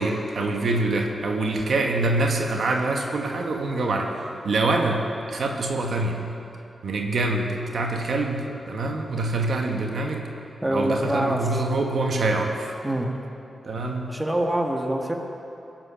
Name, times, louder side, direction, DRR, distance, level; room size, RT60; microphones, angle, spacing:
voice 1, 0.0-6.2 6.8-10.2 10.7-12.7 13.6-14.1, right 2 dB, 70° right, 2 dB, 1.3 m, -25 dB
voice 2, 10.6-11.6 12.8-13.1 14.1-15.1, right 1 dB, 15° right, 2 dB, 1.5 m, -25 dB
17.5 x 7.6 x 5.8 m, 2.8 s
cardioid pair, 65°, 0 cm